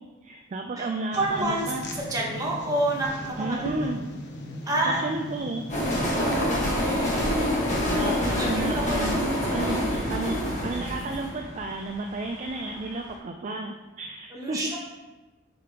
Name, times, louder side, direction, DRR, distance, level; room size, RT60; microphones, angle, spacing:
voice 1, 0.2-1.8 3.4-4.0 4.8-5.6 7.5-9.2 9.5-10.4 10.6-14.6, right 2 dB, 35° right, 3 dB, 0.3 m, -32 dB
sound 1, 1.1-6.9, equal, 55° left, 0.7 m, -37 dB
voice 2, 1.1-1.7 1.9-3.9 4.7-5.0 6.2-7.2 8.0-9.8 14.3-14.8, right 1 dB, 15° right, -3 dB, 1.1 m, -29 dB
sound 2, 5.7-12.7, equal, 35° left, 1.5 m, -26 dB
6.9 x 5.1 x 2.9 m, 1.2 s
head